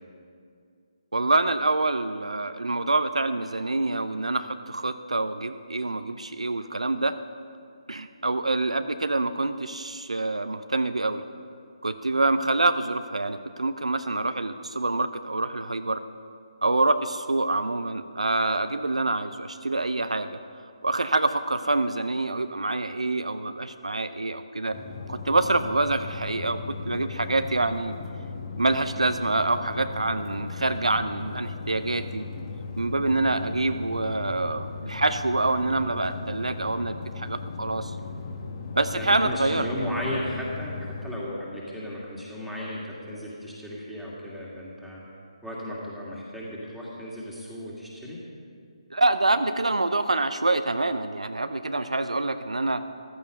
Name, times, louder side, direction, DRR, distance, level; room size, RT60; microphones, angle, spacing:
voice 1, 1.1-7.2 7.9-11.2 11.8-16.0 16.6-20.4 20.8-24.8 25.1-28.0 28.6-32.3 32.8-37.9 38.8-39.9 48.9-52.8, right 2 dB, 75° right, 10 dB, 0.6 m, -26 dB
sound 1, 24.7-41.1, left 4 dB, 35° left, 1.6 m, -37 dB
voice 2, 38.9-45.0 45.4-48.2, left 1 dB, ahead, -7 dB, 2.3 m, -35 dB
14.5 x 13.0 x 5.3 m, 2.3 s
figure-of-eight pair, 145°, 3 cm